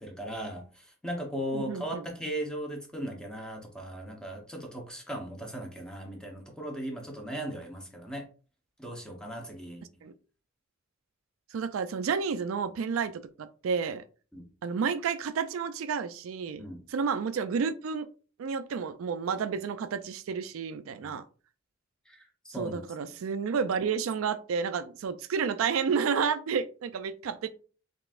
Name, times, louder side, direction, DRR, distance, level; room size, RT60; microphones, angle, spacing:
voice 1, 0.0-8.2 8.8-9.9 14.3-14.5 16.6-16.8 21.0-21.1 22.1-22.8, right 1 dB, 5° left, 0.8 m, -37 dB
voice 2, 1.5-2.1 10.0-10.1 11.5-14.0 14.6-16.6 16.9-18.1 18.4-21.2 22.5-27.5, right 6 dB, 90° right, 0.4 m, -31 dB
3.9 x 3.7 x 2.4 m
head